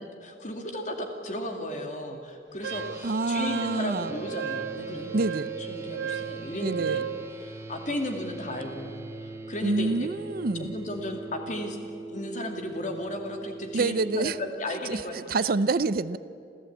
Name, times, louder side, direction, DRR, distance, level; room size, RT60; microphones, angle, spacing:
voice 1, 0.0-7.1 7.4-10.1 10.6-11.8 12.1-15.5 16.1-16.2, left 1 dB, 45° left, 4 dB, 2.1 m, -35 dB
sound 1, 2.6-14.5, right 2 dB, 15° right, 1.6 m, -42 dB
Wind instrument woodwind instrument, 2.6-7.2, right 8 dB, 90° right, 0.7 m, -35 dB
voice 2, 3.0-4.2 5.1-5.5 6.6-7.0 9.6-10.7 13.7-14.4 14.7-16.2, right 3 dB, 55° right, 16 dB, 0.6 m, -27 dB
28.0 x 14.5 x 8.5 m, 2.5 s
head